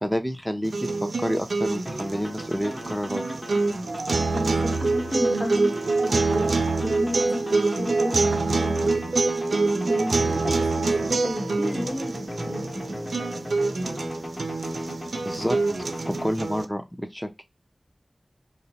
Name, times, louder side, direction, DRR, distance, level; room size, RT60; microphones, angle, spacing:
voice 1, 0.0-3.2 5.4-5.5 15.2-17.4, equal, ahead, 0.5 m, -29 dB
sound 1, 0.6-16.7, right 3 dB, 90° right, 0.3 m, -26 dB
sound 2, 1.8-16.3, equal, 15° left, 1.0 m, -37 dB
voice 2, 4.3-6.5 6.8-8.9 9.6-12.9, equal, 55° left, 0.9 m, -33 dB
2.5 x 2.1 x 2.8 m
wide cardioid pair, 55°, 0 cm